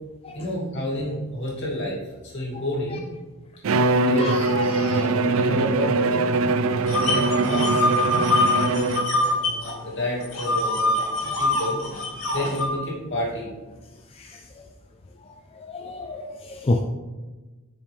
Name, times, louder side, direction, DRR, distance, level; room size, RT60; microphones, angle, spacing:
voice 1, 0.3-2.0 2.2-3.0 4.0-4.3 4.9-6.3 6.8-8.3 8.7-8.9 9.4-10.9 11.4-11.8 12.3-13.7, equal, 60° left, -5 dB, 2.7 m, -30 dB
Bowed string instrument, 3.6-9.3, right 3 dB, 70° right, 0.4 m, -22 dB
voice 2, 4.1-5.1 11.2-11.4 14.2-14.4 15.6-16.8, left 2 dB, 25° left, 3 dB, 0.4 m, -29 dB
sound 1, 6.9-9.7 10.0-12.7, left 2 dB, 80° left, 2.5 m, -24 dB
8.1 x 6.1 x 3.4 m, 1.2 s
head